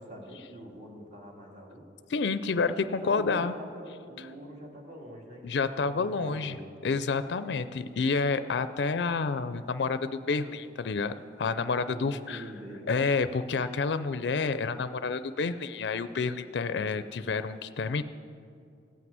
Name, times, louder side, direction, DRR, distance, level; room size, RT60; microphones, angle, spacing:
voice 1, 0.0-1.9 3.0-6.6 11.9-12.9, right 1 dB, 40° right, 0 dB, 2.0 m, -45 dB
voice 2, 2.1-3.5 5.4-6.6 6.8-12.5 12.9-18.0, left 4 dB, 65° left, 12 dB, 0.4 m, -29 dB
15.5 x 6.0 x 9.4 m, 2.5 s
head